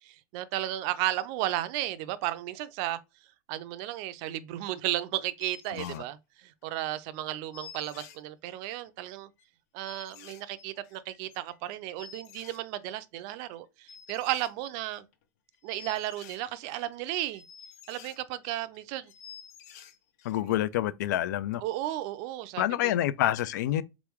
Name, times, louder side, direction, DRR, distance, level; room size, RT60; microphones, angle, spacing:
voice 1, 0.0-3.0 3.5-9.3 9.7-15.0 15.6-17.4 17.9-19.1 21.6-22.9, right 14 dB, 45° right, 0.4 m, -34 dB
sound 1, 4.8-4.9 5.2-6.0 6.6-6.7 6.9-7.0 7.2-7.3 7.5-8.9 9.4-9.5 9.9-13.0 13.3-13.6 13.9-15.2 15.5-18.8 19.0-20.4 20.7-20.8, left 7 dB, 65° left, 0.7 m, -50 dB
voice 2, 5.7-6.0 20.2-21.6 22.6-23.8, left 13 dB, 90° left, 0.4 m, -28 dB
3.7 x 3.0 x 3.5 m
supercardioid pair, 165°, 9 cm